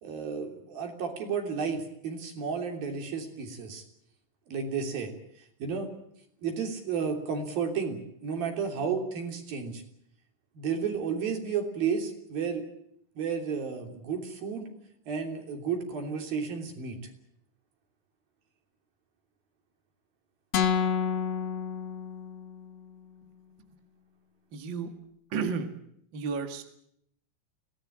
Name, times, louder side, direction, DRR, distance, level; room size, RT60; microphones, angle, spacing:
voice 1, 0.0-3.8 4.5-5.1 5.6-5.9 6.4-9.8 10.5-12.6 13.2-14.7 15.1-17.0, right 6 dB, 60° right, 4 dB, 4.8 m, -32 dB
sound 1, 20.5-22.6, left 7 dB, 50° left, 2.0 m, -29 dB
voice 2, 24.5-24.9 25.3-25.7 26.1-26.6, right 5 dB, 40° right, 6 dB, 1.7 m, -32 dB
23.0 x 18.0 x 8.7 m, 0.72 s
omnidirectional pair, 4.9 m